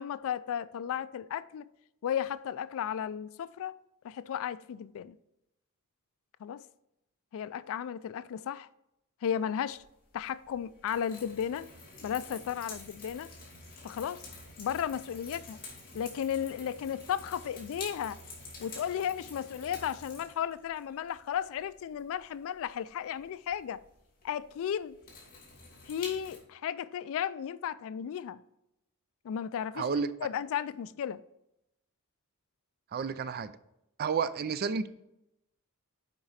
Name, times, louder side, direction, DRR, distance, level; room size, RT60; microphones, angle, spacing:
voice 1, 0.0-1.6 2.0-3.8 4.0-5.2 6.4-6.6 7.3-8.7 9.2-9.8 10.1-11.7 12.0-13.3 13.8-14.2 14.6-15.6 15.9-18.2 18.6-23.8 24.2-25.0 25.8-28.4 29.2-29.9 30.2-31.2, left 9 dB, 65° left, 0.3 m, -34 dB
sound 1, 9.8-26.4, left 3 dB, 40° left, 2.6 m, -48 dB
voice 2, 29.7-30.1 32.9-33.5 34.0-34.9, right 5 dB, 45° right, 0.4 m, -31 dB
7.9 x 4.9 x 4.2 m
head